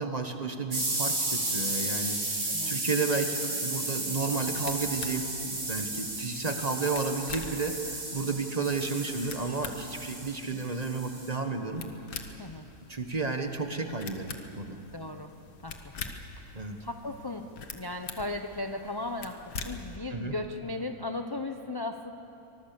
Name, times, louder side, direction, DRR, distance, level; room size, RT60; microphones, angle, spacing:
voice 1, 0.0-2.4 2.7-7.8 8.1-11.8 12.9-14.3 14.5-14.8 16.5-16.8 20.1-20.3, right 4 dB, 25° right, 5 dB, 1.4 m, -32 dB
sound 1, 0.7-11.3, right 2 dB, 85° right, 4.8 m, -33 dB
voice 2, 2.5-2.8 12.4-12.6 14.9-15.3 15.6-22.1, left 2 dB, 35° left, 5 dB, 0.4 m, -37 dB
sound 2, 4.1-20.0, left 5 dB, 85° left, 2.0 m, -45 dB
24.5 x 21.0 x 7.0 m, 2.9 s
omnidirectional pair, 1.7 m